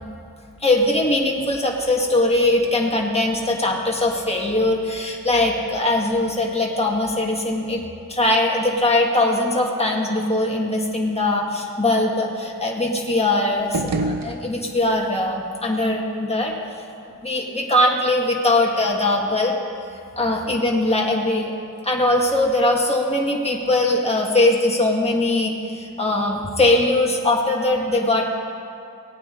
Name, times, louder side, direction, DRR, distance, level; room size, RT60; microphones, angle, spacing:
voice 1, 0.6-7.8 8.1-16.5 17.2-19.6 20.2-21.5 21.8-28.3, left 2 dB, 20° left, -2 dB, 1.6 m, -21 dB
sound 1, 13.6-15.0, right 2 dB, 75° right, 0.8 m, -28 dB
18.0 x 9.2 x 3.8 m, 2.5 s
cardioid pair, 45°, 34 cm